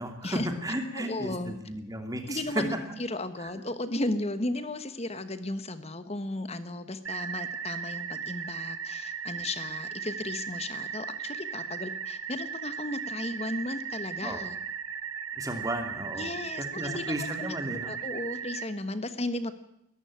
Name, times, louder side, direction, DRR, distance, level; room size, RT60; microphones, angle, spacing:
voice 1, 0.0-2.7 3.4-3.5 14.2-14.4 15.4-16.3 16.7-17.9, right 1 dB, 15° right, 5 dB, 2.6 m, -34 dB
voice 2, 0.9-1.6 2.3-14.6 16.2-19.5, left 2 dB, 30° left, 12 dB, 1.3 m, -35 dB
sound 1, 7.1-18.7, right 7 dB, 75° right, 1.6 m, -37 dB
22.0 x 13.5 x 9.0 m, 0.82 s
head